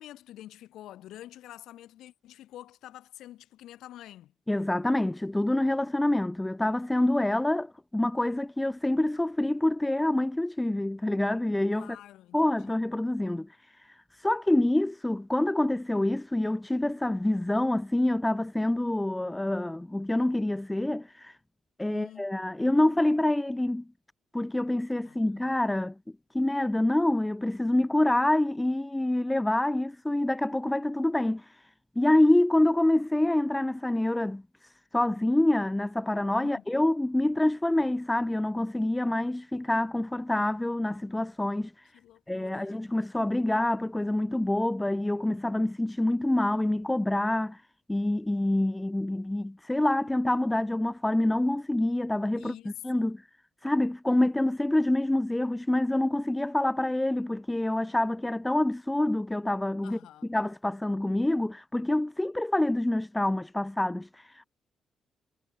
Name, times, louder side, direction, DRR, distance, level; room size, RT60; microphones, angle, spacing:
voice 1, 0.0-4.3 11.7-12.7 21.9-22.3 25.0-25.6 36.3-36.6 41.9-42.9 52.4-53.1 59.8-60.3, left 13 dB, 80° left, 4.5 m, -47 dB
voice 2, 4.5-12.0 12.3-13.5 14.2-21.4 21.8-23.8 24.3-25.9 26.3-31.5 32.0-34.4 34.9-41.7 42.3-47.6 47.9-52.6 52.8-53.2 53.6-60.0 60.3-64.5, left 1 dB, 10° left, 0.5 m, -26 dB
cardioid pair, 90°, 0 cm